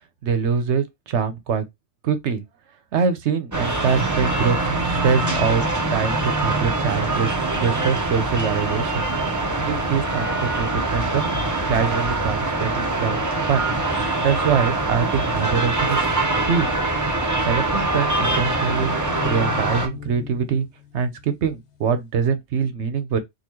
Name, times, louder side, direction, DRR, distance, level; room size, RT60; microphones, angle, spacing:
voice 1, 0.2-1.6 2.0-2.4 2.9-9.1 9.6-11.3 11.7-13.2 13.5-13.7 14.2-16.1 16.5-16.7 17.4-19.0 19.2-20.7 20.9-23.2, right 6 dB, 75° right, 1.0 m, -24 dB
sound 1, 3.5-19.9, right 2 dB, 20° right, 0.6 m, -23 dB
sound 2, 18.0-21.7, left 8 dB, 70° left, 1.0 m, -38 dB
3.8 x 2.3 x 3.0 m
omnidirectional pair, 1.2 m